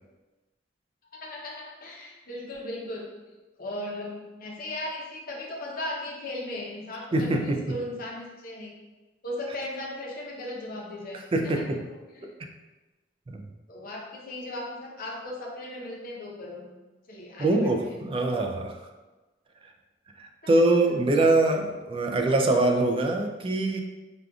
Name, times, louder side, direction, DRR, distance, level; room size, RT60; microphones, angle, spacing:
voice 1, 1.1-3.0 3.6-8.8 9.2-12.3 13.7-16.7 17.1-17.9 18.3-18.5 21.1-21.2, left 1 dB, 50° left, -2 dB, 0.7 m, -37 dB
voice 2, 7.1-7.8 11.3-11.8 13.3-13.4 17.4-18.8 20.2-23.8, right 2 dB, 30° right, 3 dB, 0.3 m, -24 dB
4.9 x 2.4 x 2.3 m, 1.2 s
head